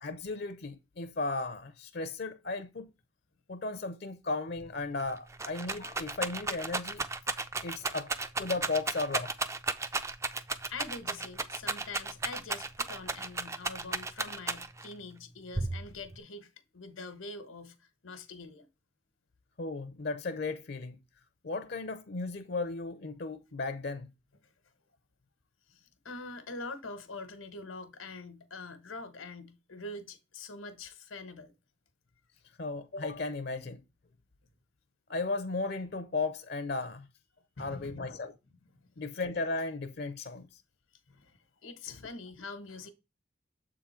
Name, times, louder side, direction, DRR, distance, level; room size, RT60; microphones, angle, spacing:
voice 1, 0.0-2.9 3.5-7.0 7.6-8.1 8.4-9.3 19.6-20.9 21.4-24.1 32.6-33.8 35.1-37.1 37.6-38.3 39.0-40.6 42.0-42.1, left 3 dB, 50° left, 0.5 m, -35 dB
Rattle, 4.6-4.7 5.0-14.9 15.6-16.2, right 3 dB, 15° right, 0.3 m, -34 dB
voice 2, 10.7-18.7 24.4-24.5 25.7-31.5 37.6-38.3 41.1-42.9, left 3 dB, 85° left, 1.2 m, -44 dB
7.4 x 3.7 x 4.3 m
head